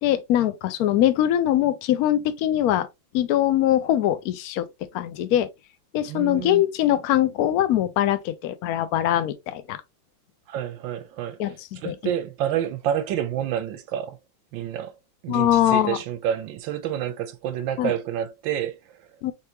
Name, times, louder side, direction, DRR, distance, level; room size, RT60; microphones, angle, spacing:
voice 1, 0.0-2.9 3.1-4.7 4.9-5.5 5.9-9.8 11.4-11.5 11.8-11.9 15.3-16.0 17.8-17.9 19.2-19.3, left 12 dB, 75° left, 0.8 m, -22 dB
voice 2, 6.0-6.6 10.5-14.2 14.5-15.0 15.2-19.1, right 10 dB, 75° right, 1.2 m, -29 dB
4.3 x 3.5 x 2.8 m
omnidirectional pair, 2.3 m